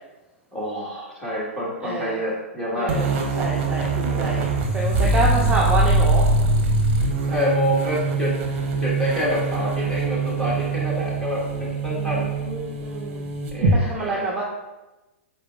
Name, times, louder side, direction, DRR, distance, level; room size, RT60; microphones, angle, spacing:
voice 1, 0.5-3.0 4.0-4.4 5.2-5.5 7.2-8.3 8.8-12.2 13.5-14.3, left 1 dB, 5° left, -6 dB, 1.4 m, -27 dB
voice 2, 1.8-2.2 2.8-6.3 11.9-13.3 13.7-14.4, right 3 dB, 15° right, -4 dB, 0.6 m, -28 dB
sound 1, 2.9-13.8, right 2 dB, 40° right, 0.8 m, -23 dB
4.9 x 4.1 x 2.3 m, 1.1 s
figure-of-eight pair, 110°, 7 cm